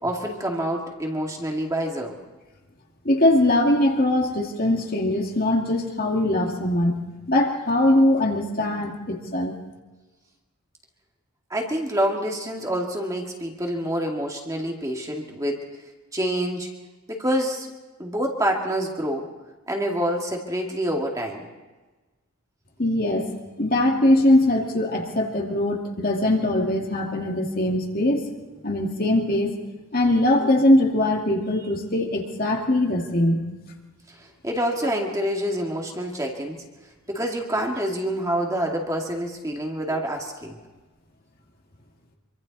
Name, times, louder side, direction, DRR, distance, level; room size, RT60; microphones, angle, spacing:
voice 1, 0.0-2.2 11.5-15.7 16.1-16.7 17.1-17.7 18.0-19.3 19.7-21.5 34.1-36.6 37.1-40.6, equal, 15° right, 0 dB, 2.2 m, -27 dB
voice 2, 3.0-7.0 7.3-9.5 22.8-23.3 23.6-28.3 28.6-29.5 29.9-33.4, left 1 dB, 40° left, 1 dB, 2.4 m, -21 dB
26.0 x 24.0 x 4.2 m, 1.2 s
head